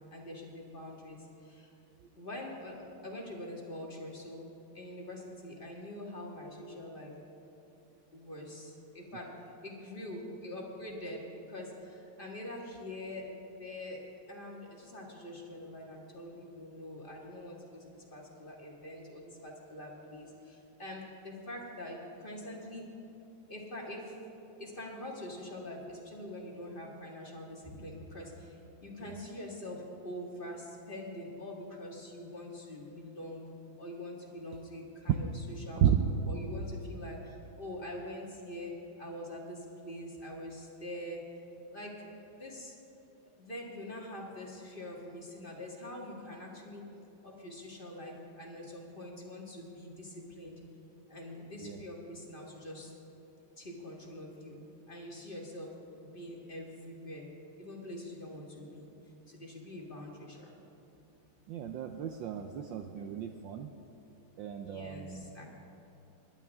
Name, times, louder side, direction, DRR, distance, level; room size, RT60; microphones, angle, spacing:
voice 1, 0.1-1.7 2.2-4.4 4.7-7.1 8.1-9.3 9.6-14.0 14.3-22.9 23.5-24.1 24.6-33.4 33.8-41.2 41.7-42.7 43.4-46.8 47.2-50.6 51.1-52.9 53.6-54.6 54.9-55.7 56.0-57.3 57.6-58.9 59.3-60.6 64.6-65.6, left 1 dB, 25° left, -1 dB, 1.8 m, -44 dB
voice 2, 61.5-63.7 64.4-65.3, right 10 dB, 70° right, 5 dB, 1.2 m, -33 dB
27.0 x 11.5 x 3.5 m, 2.9 s
omnidirectional pair, 2.4 m